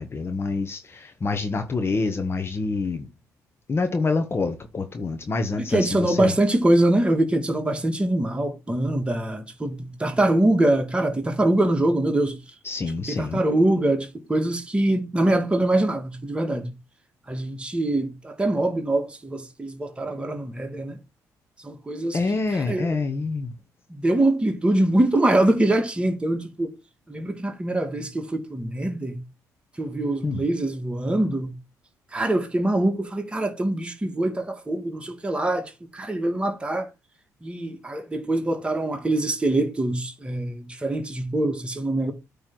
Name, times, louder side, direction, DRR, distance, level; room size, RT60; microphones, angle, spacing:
voice 1, 0.0-3.1 3.7-6.3 12.6-13.4 22.1-23.5 30.2-30.4, left 3 dB, 35° left, 1.2 m, -27 dB
voice 2, 5.7-12.4 13.1-16.8 17.3-21.0 21.6-22.2 22.7-22.9 23.9-26.7 27.1-29.2 29.8-31.6 32.1-36.9 37.4-42.1, right 1 dB, 15° right, 1.9 m, -23 dB
8.8 x 3.4 x 6.0 m
supercardioid pair, 70°, 7 cm